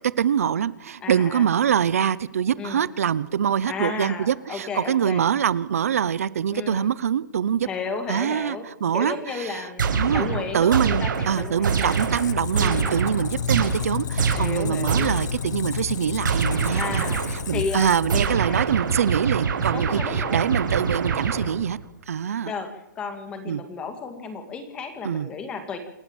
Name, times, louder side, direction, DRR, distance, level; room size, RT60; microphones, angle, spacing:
voice 1, 0.2-7.7 8.1-9.7 9.9-10.3 10.5-17.0 17.3-21.8 22.1-22.5 23.5-23.6 25.0-25.3, right 8 dB, 50° right, 18 dB, 0.8 m, -24 dB
voice 2, 1.0-1.5 2.6-2.8 3.7-5.2 6.5-6.9 7.6-8.6 8.9-12.0 12.5-13.0 14.3-15.1 16.7-17.2 17.5-18.7 19.7-20.4 22.5-22.7 23.0-25.8, left 5 dB, 10° left, 7 dB, 2.0 m, -33 dB
sound 1, 9.8-15.4 16.2-17.5 18.1-21.8, right 5 dB, 80° right, 5.8 m, -25 dB
Squeak, 11.1-18.8, left 8 dB, 65° left, 0.9 m, -32 dB
28.0 x 14.0 x 7.3 m, 0.91 s
hypercardioid pair, 180°, 10 cm